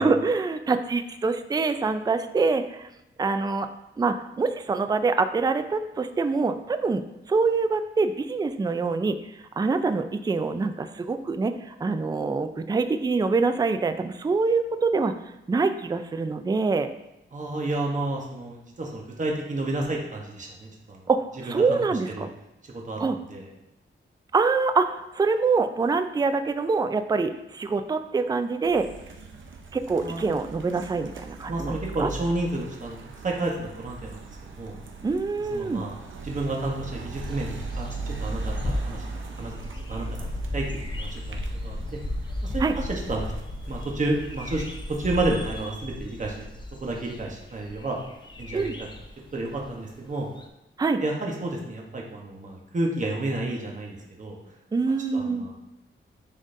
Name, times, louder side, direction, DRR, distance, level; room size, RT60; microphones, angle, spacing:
voice 1, 0.0-2.9 3.2-3.7 4.0-7.0 7.3-9.2 9.6-15.1 15.5-16.9 21.1-22.3 23.0-23.2 24.3-28.9 29.7-32.1 35.0-35.8 42.6-42.7 48.5-48.8 50.8-51.0 54.7-55.5, right 4 dB, 20° right, 9 dB, 0.3 m, -25 dB
voice 2, 17.3-21.1 21.4-21.8 22.1-22.3 22.7-23.5 30.0-30.2 31.5-33.0 33.2-34.8 35.5-35.9 36.2-39.5 39.9-41.8 42.5-43.3 43.7-46.4 46.8-48.0 48.4-48.9 49.3-50.3 51.0-54.4 55.1-55.5, right 2 dB, 35° right, -1 dB, 1.0 m, -31 dB
sound 1, 28.6-45.7, right 4 dB, 70° right, 0.7 m, -39 dB
sound 2, 37.1-50.1 50.4-50.5, left 1 dB, 20° left, 0.6 m, -35 dB
9.8 x 3.8 x 2.6 m, 0.89 s
wide cardioid pair, 115°, 21 cm